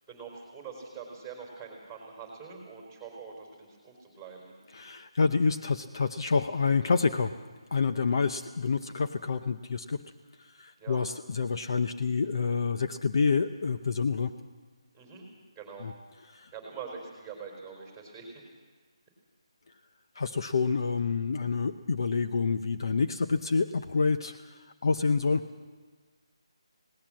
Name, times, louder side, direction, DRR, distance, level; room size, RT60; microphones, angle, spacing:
voice 1, 0.1-4.5 8.1-8.4 10.8-11.0 14.9-15.2 15.6-15.9 16.5-18.4 21.3-21.5, right 5 dB, ahead, 0 dB, 4.0 m, -44 dB
voice 2, 4.7-7.3 7.7-10.0 10.4-14.3 15.8-15.9 16.3-16.5 20.2-25.4, left 5 dB, 50° left, 9 dB, 0.7 m, -28 dB
19.0 x 18.0 x 7.6 m, 1.5 s
figure-of-eight pair, 170°, 3 cm